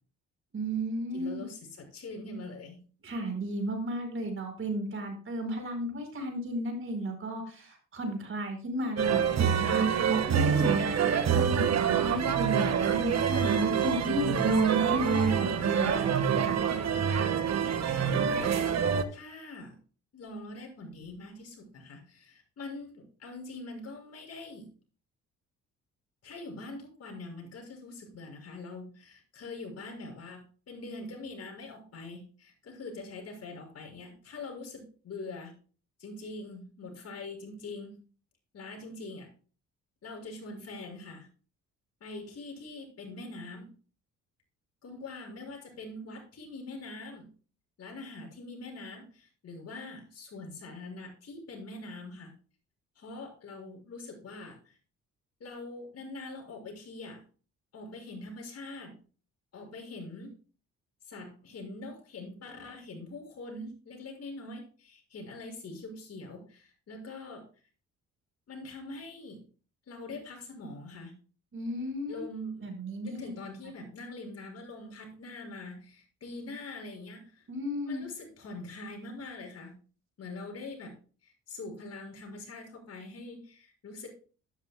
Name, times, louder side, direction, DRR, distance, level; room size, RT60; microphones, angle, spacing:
voice 1, 0.5-1.4 3.0-10.9 11.3-16.6 71.5-72.2 72.6-73.3 77.5-78.0, right 1 dB, 45° right, 3 dB, 5.2 m, -33 dB
voice 2, 1.1-2.8 10.5-11.0 17.9-19.8 20.1-24.7 26.2-35.5 36.0-38.0 38.5-39.3 40.0-41.3 42.0-43.7 44.8-47.3 47.8-52.3 53.0-54.8 55.4-57.2 57.7-58.9 59.5-60.3 61.0-67.4 68.5-69.4 69.9-71.1 72.1-72.7 73.0-77.5 77.9-79.7 80.2-80.9 81.2-84.1, left 2 dB, 55° left, 1 dB, 6.2 m, -43 dB
sound 1, 9.0-19.0, right 7 dB, 60° right, 1.5 m, -26 dB
13.0 x 12.0 x 2.2 m, 0.38 s
cardioid pair, 90°, 30 cm